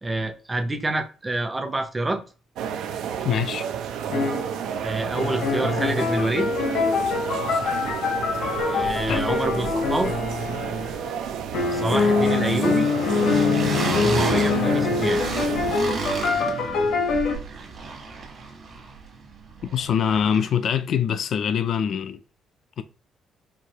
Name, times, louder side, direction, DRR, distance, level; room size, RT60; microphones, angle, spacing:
voice 1, 0.0-2.2 4.8-6.5 8.7-10.1 11.7-12.9 14.0-15.2, right 2 dB, 15° right, 0.6 m, -27 dB
sound 1, 2.6-15.8, right 8 dB, 85° right, 0.5 m, -31 dB
voice 2, 3.2-3.7 9.1-9.3 19.7-22.2 22.8-22.9, left 8 dB, 55° left, 0.4 m, -24 dB
sound 2, 4.1-4.5 5.1-11.1 11.5-17.3, left 4 dB, 80° left, 1.1 m, -24 dB
sound 3, 6.8-6.9 7.1-8.3 8.5-20.7, right 4 dB, 45° right, 1.3 m, -34 dB
4.7 x 2.7 x 2.9 m
cardioid pair, 140°, 0 cm